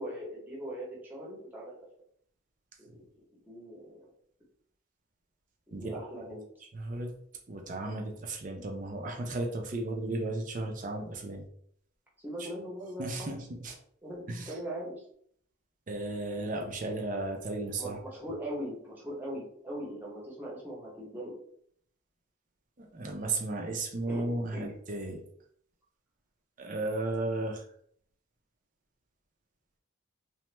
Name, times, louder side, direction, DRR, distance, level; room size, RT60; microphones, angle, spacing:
voice 1, 0.0-1.7 2.8-3.0 3.5-4.0 5.7-6.4 12.2-13.3 14.0-15.0 17.8-21.4 24.0-24.2 24.5-24.7, equal, 10° right, -4 dB, 0.8 m, -40 dB
voice 2, 6.7-7.1 7.5-11.4 12.4-12.5 13.0-13.7 14.3-14.5 15.9-18.0 22.8-25.2 26.6-27.6, right 2 dB, 40° right, 2 dB, 0.5 m, -34 dB
2.9 x 2.1 x 3.2 m, 0.64 s
head